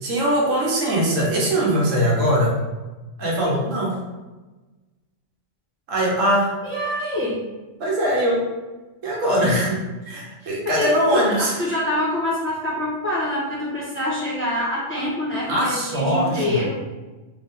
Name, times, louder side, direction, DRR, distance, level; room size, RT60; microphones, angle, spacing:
voice 1, 0.0-2.5 3.2-4.0 5.9-6.5 7.8-8.4 9.0-11.5 15.5-16.6, equal, 80° right, -3 dB, 1.3 m, -21 dB
voice 2, 6.6-7.4 10.4-16.7, left 1 dB, 10° left, -9 dB, 1.0 m, -25 dB
3.4 x 2.6 x 3.5 m, 1.2 s
omnidirectional pair, 1.3 m